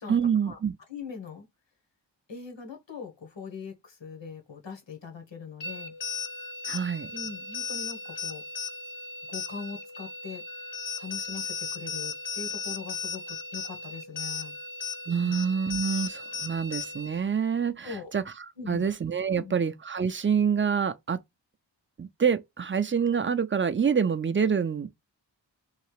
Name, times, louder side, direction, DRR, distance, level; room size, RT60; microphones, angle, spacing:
voice 1, 0.1-0.8 6.7-7.1 15.1-18.2 18.7-21.2 22.0-24.9, right 7 dB, 30° right, 0.4 m, -26 dB
voice 2, 0.9-1.5 2.3-5.9 7.1-8.4 9.3-10.4 11.0-14.6 15.2-15.4 17.8-18.1 18.6-18.9 19.3-19.6, left 5 dB, 75° left, 1.2 m, -41 dB
sound 1, 5.6-17.2, left 5 dB, 45° left, 0.6 m, -36 dB
3.2 x 2.9 x 3.2 m
wide cardioid pair, 75°, 45 cm